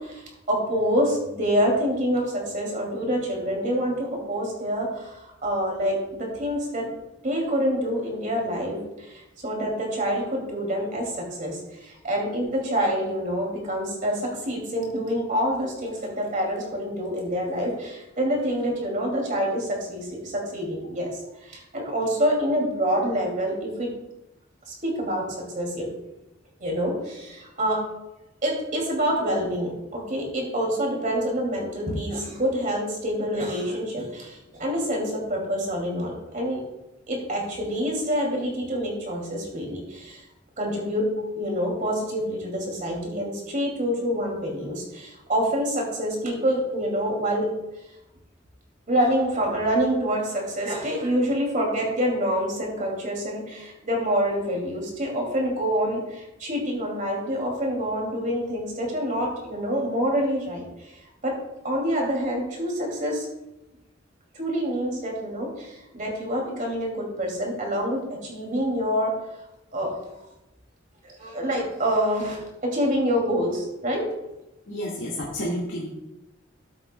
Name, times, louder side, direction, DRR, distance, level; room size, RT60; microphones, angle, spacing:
voice 1, 0.0-6.9 7.2-23.9 24.7-25.9 26.6-27.8 28.4-36.6 37.1-40.2 40.6-41.1 41.3-47.5 48.9-61.3 61.6-63.3 64.3-69.1 69.7-69.9 71.0-74.1, equal, 45° right, -1 dB, 2.5 m, -27 dB
voice 2, 74.7-75.9, equal, 75° left, -4 dB, 1.7 m, -30 dB
13.5 x 7.7 x 2.2 m, 0.95 s
head